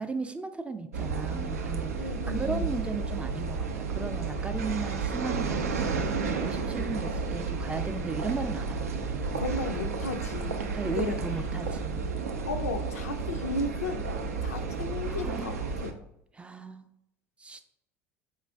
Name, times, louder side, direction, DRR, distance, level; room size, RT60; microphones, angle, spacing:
voice 1, 0.0-9.4 10.7-12.1 15.1-15.7 16.3-16.9 17.4-17.6, right 4 dB, 15° right, 9 dB, 0.4 m, -36 dB
sound 1, 0.9-15.9, right 4 dB, 85° right, 0.4 m, -32 dB
voice 2, 2.0-2.7 9.3-11.2 12.5-14.1 14.4-15.6 15.8-16.0, left 3 dB, 85° left, 8 dB, 0.4 m, -35 dB
4.0 x 2.4 x 3.4 m, 0.78 s
hypercardioid pair, 75°, 8 cm